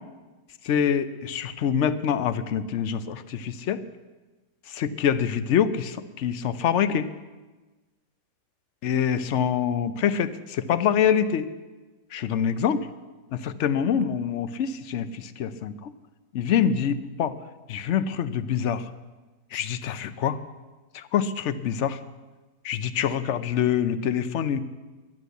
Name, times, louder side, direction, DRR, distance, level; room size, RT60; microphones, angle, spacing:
voice 1, 0.6-3.8 4.7-7.1 8.8-11.5 12.1-12.9 13.3-15.9 16.3-17.3 17.7-18.8 19.5-20.4 20.9-22.0 22.6-24.6, left 8 dB, 60° left, 13 dB, 0.8 m, -25 dB
11.5 x 11.0 x 8.0 m, 1.2 s
omnidirectional pair, 1.8 m